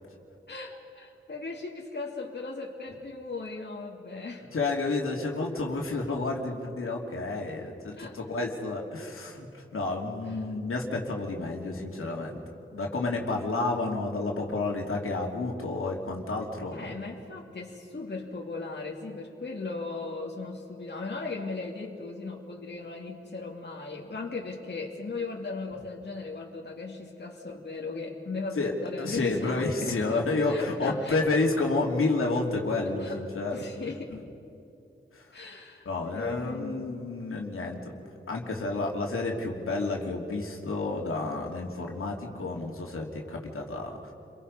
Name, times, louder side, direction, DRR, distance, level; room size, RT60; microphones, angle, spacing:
voice 1, 0.5-4.5 8.0-8.2 10.3-10.4 16.7-31.2 32.8-33.2 33.5-34.2 35.3-36.9, left 3 dB, 55° left, -1 dB, 2.5 m, -37 dB
voice 2, 4.5-12.4 12.7-17.0 28.6-33.6 35.1-35.2 35.8-37.8 38.3-44.1, left 3 dB, 85° left, -1 dB, 3.0 m, -30 dB
29.5 x 23.5 x 5.6 m, 2.8 s
wide cardioid pair, 95°, 21 cm